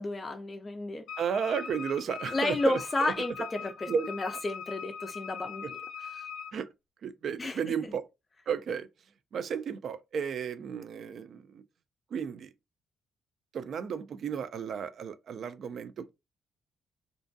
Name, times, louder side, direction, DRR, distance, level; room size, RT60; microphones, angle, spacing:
voice 1, 0.0-1.0 2.3-5.6 6.1-6.3 7.4-7.6, left 2 dB, 25° left, 0.4 m, -32 dB
Wind instrument woodwind instrument, 1.1-6.6, left 6 dB, 85° left, 0.5 m, -41 dB
voice 2, 1.2-3.1 3.9-4.0 6.5-6.7 7.0-8.1 8.5-8.9 9.3-11.6 12.1-12.5 13.5-16.1, right 7 dB, 60° right, 0.4 m, -33 dB
2.5 x 2.2 x 2.6 m
cardioid pair, 90°, 0 cm